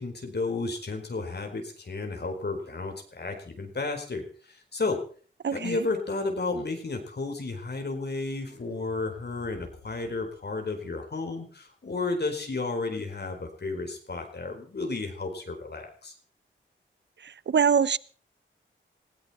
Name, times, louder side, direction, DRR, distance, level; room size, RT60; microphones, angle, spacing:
voice 1, 0.0-5.0 5.5-16.1, left 3 dB, 55° left, 4 dB, 4.5 m, -32 dB
voice 2, 5.4-5.8 17.2-18.0, right 7 dB, 60° right, 20 dB, 0.8 m, -24 dB
sound 1, 8.2-11.2, left 3 dB, 80° left, 5.9 m, -54 dB
20.0 x 16.0 x 4.4 m, 0.42 s
cardioid pair, 50°, 21 cm